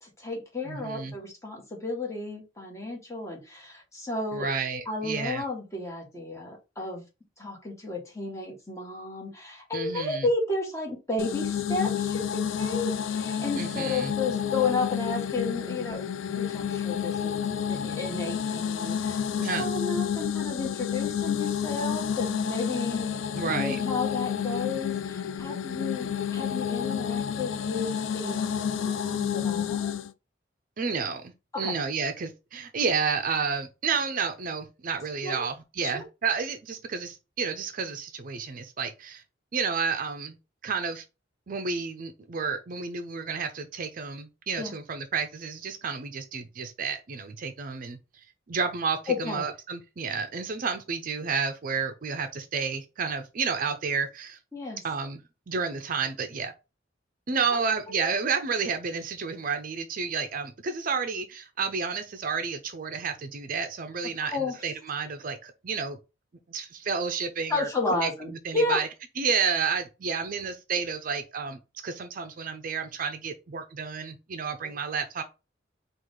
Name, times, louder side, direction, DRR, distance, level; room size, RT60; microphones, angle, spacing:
voice 1, 0.0-4.5 4.8-7.0 7.4-16.0 16.3-17.4 17.7-29.9 31.5-31.7 35.2-35.4 35.8-36.0 44.6-44.7 49.1-49.5 54.5-54.8 57.5-57.6 57.9-58.1 64.2-64.5 67.5-68.8 74.6-74.7, left 3 dB, 15° left, 1.4 m, -32 dB
voice 2, 0.6-1.2 4.3-5.4 9.7-10.3 13.6-14.1 19.4-19.7 23.3-23.8 30.8-31.3 31.6-39.2 39.5-40.4 40.6-41.0 41.5-48.0 48.5-54.4 54.8-56.5 57.3-66.0 66.5-68.9 69.2-75.2, right 5 dB, 45° right, 0.5 m, -31 dB
sound 1, 11.2-30.1, left 8 dB, 85° left, 0.4 m, -30 dB
4.7 x 2.4 x 3.6 m
head